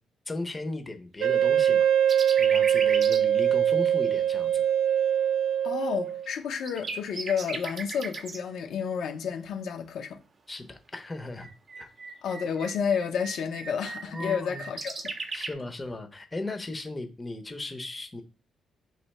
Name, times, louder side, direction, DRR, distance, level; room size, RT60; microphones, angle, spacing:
voice 1, 0.3-1.9 2.4-4.7 10.5-11.5 11.8-11.9 14.0-14.6 15.3-18.2, left 2 dB, 20° left, 0.7 m, -36 dB
Wind instrument woodwind instrument, 1.2-6.3, right 9 dB, 80° right, 0.3 m, -23 dB
sound 1, 2.1-3.2 3.8-3.9 6.1-6.3 6.6-8.4 11.1-15.5, right 4 dB, 45° right, 0.6 m, -37 dB
voice 2, 5.6-10.2 12.2-15.4, left 7 dB, 75° left, 0.6 m, -31 dB
3.1 x 2.7 x 4.1 m
cardioid pair, 90°, 0 cm